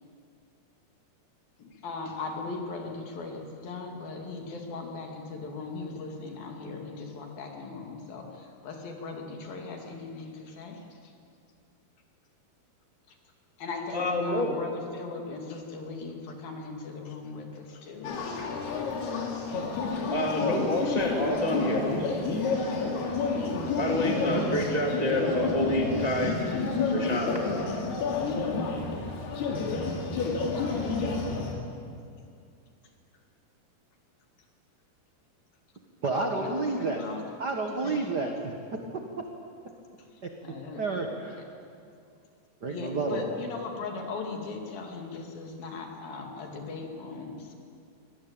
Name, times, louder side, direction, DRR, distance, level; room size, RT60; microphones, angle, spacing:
voice 1, 1.6-11.1 13.1-13.2 13.6-18.4 36.1-37.4 37.8-38.1 40.0-41.0 42.7-47.5, left 4 dB, 65° left, 2 dB, 4.3 m, -39 dB
voice 2, 13.9-14.5 20.1-21.8 23.8-26.5 26.9-27.5, left 1 dB, 15° right, 1 dB, 1.4 m, -28 dB
sound 1, 18.0-31.5, left 4 dB, 85° left, 4.6 m, -30 dB
voice 3, 36.0-37.0 37.4-38.5 40.2-40.3 40.8-41.4 42.6-43.2, right 3 dB, 65° right, 3 dB, 1.0 m, -30 dB
24.5 x 18.0 x 9.0 m, 2.4 s
omnidirectional pair, 4.5 m